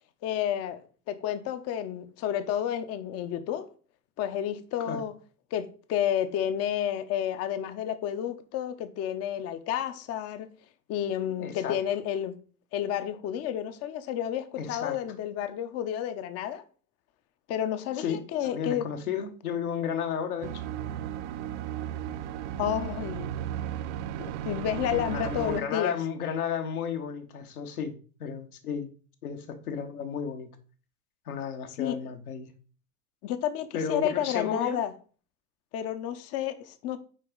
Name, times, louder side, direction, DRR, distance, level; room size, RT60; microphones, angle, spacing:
voice 1, 0.2-3.7 4.2-5.1 5.5-10.5 10.9-12.4 12.7-16.6 17.5-18.9 22.6-23.3 24.2-26.0 31.7-32.0 33.2-34.9 35.7-37.0, left 10 dB, 30° left, 0.7 m, -31 dB
voice 2, 11.4-11.8 14.6-15.0 18.0-20.6 22.3-22.4 24.9-27.9 28.2-28.9 29.2-30.5 31.3-32.5 33.7-34.8, left 7 dB, 65° left, 1.3 m, -33 dB
sound 1, 20.4-25.6, right 11 dB, 50° right, 0.5 m, -35 dB
6.5 x 4.9 x 3.8 m
figure-of-eight pair, 80°, 47 cm